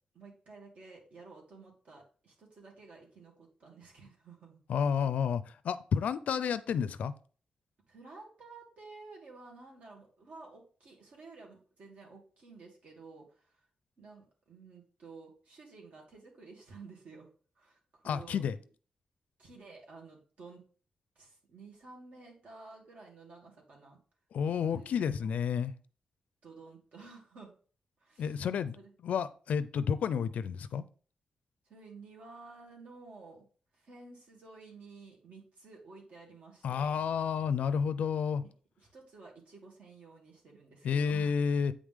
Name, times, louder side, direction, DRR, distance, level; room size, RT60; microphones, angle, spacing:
voice 1, 0.1-4.6 7.9-13.6 14.0-17.3 17.6-18.5 19.4-20.6 21.2-24.0 24.7-25.3 26.4-27.5 28.0-28.4 28.7-28.9 31.6-33.5 33.7-37.0 38.4-38.5 38.8-41.4, right 4 dB, 70° right, -1 dB, 2.6 m, -52 dB
voice 2, 4.7-7.1 18.0-18.5 24.3-25.7 28.2-28.8 29.0-30.8 36.6-38.4 40.8-41.7, left 7 dB, 80° left, 14 dB, 0.5 m, -30 dB
8.5 x 5.0 x 3.7 m, 0.41 s
wide cardioid pair, 140°, 2 cm